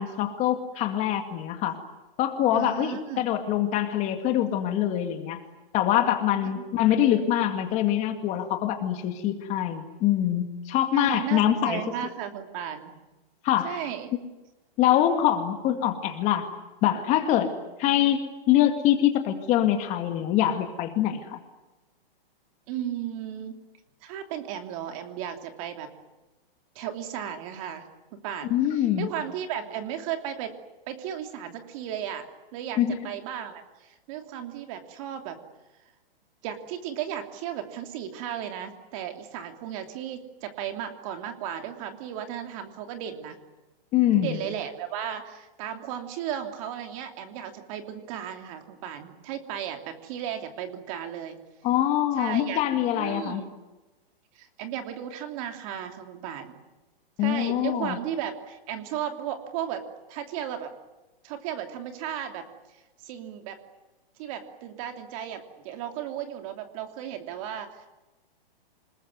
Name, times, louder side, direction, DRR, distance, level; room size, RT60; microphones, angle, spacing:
voice 1, 0.0-1.7 2.2-5.4 5.7-11.8 13.4-13.8 14.8-16.5 16.8-17.5 17.8-21.4 28.5-29.1 32.8-32.9 43.9-44.4 51.6-53.4 57.2-58.0, left 11 dB, 25° left, 6 dB, 2.2 m, -24 dB
voice 2, 2.5-3.3 6.4-6.6 10.9-12.9 13.6-14.1 22.7-23.6 24.0-25.9 26.7-27.9 28.1-30.5 30.9-32.3 32.5-35.4 36.4-43.4 44.2-51.4 52.2-52.6 53.0-53.5 54.3-56.5 57.2-60.7 61.2-62.5 63.0-63.6 64.2-67.9, right 9 dB, 35° right, 6 dB, 3.0 m, -35 dB
28.5 x 20.5 x 9.5 m, 1.1 s
hypercardioid pair, 155°, 30 cm